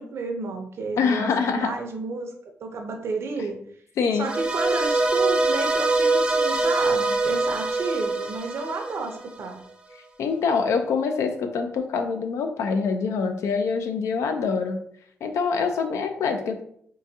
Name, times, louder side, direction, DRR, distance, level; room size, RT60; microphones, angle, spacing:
voice 1, 0.0-3.6 4.1-9.6, right 3 dB, 70° right, 4 dB, 0.6 m, -32 dB
voice 2, 1.0-1.7 4.0-4.3 10.2-14.8 15.2-16.6, left 5 dB, 90° left, 6 dB, 0.4 m, -25 dB
sound 1, 4.2-9.5, right 2 dB, 20° right, 0.6 m, -23 dB
3.8 x 2.5 x 2.6 m, 0.65 s
cardioid pair, 80°, 5 cm